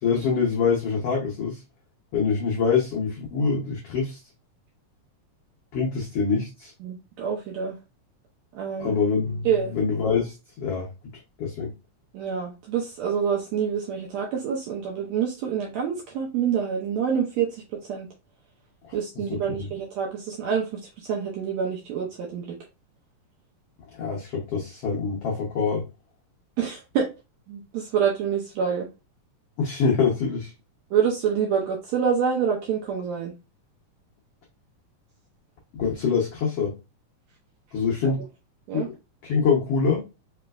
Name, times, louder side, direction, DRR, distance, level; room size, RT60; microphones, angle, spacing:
voice 1, 0.0-1.6 2.1-4.2 5.7-6.7 8.8-10.9 11.4-11.7 18.8-19.7 23.9-25.9 29.6-30.5 35.7-36.7 37.7-38.2 38.7-38.8 39.2-40.0, left 5 dB, 85° left, -2 dB, 1.3 m, -25 dB
voice 2, 6.8-7.7 8.5-8.9 9.4-9.7 12.1-17.6 17.9-18.1 18.9-20.7 21.0-22.6 26.6-27.1 27.5-28.9 30.9-33.3 38.0-38.1 38.7-38.9, right 7 dB, 75° right, -1 dB, 1.6 m, -27 dB
4.9 x 3.2 x 2.3 m, 0.27 s
omnidirectional pair, 3.8 m